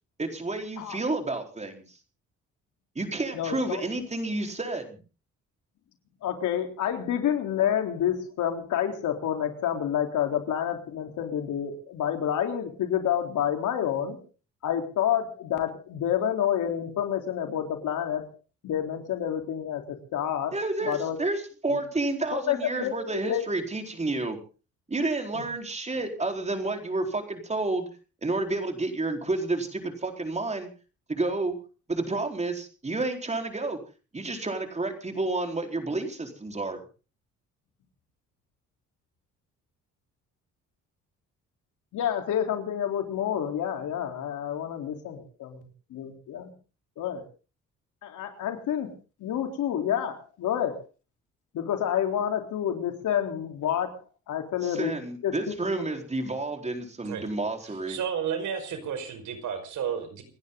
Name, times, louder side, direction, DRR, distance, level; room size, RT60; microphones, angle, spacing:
voice 1, 0.2-2.0 2.9-5.0 20.5-24.4 24.9-27.9 28.2-30.7 31.1-31.6 31.9-33.8 34.1-36.8 54.6-58.0, right 2 dB, 20° right, 4 dB, 4.3 m, -30 dB
voice 2, 3.3-3.8 6.2-14.2 14.6-18.3 18.6-20.5 20.8-21.2 22.3-22.9 23.2-23.4 25.3-25.4 41.9-45.6 45.9-46.5 47.0-47.2 48.0-48.9 49.2-50.7 51.5-54.0 54.3-54.9 55.2-55.5, left 9 dB, 80° left, 4 dB, 3.8 m, -28 dB
voice 3, 57.9-60.2, right 7 dB, 75° right, 7 dB, 5.3 m, -32 dB
29.0 x 10.5 x 3.9 m, 0.36 s
cardioid pair, 90°, 30 cm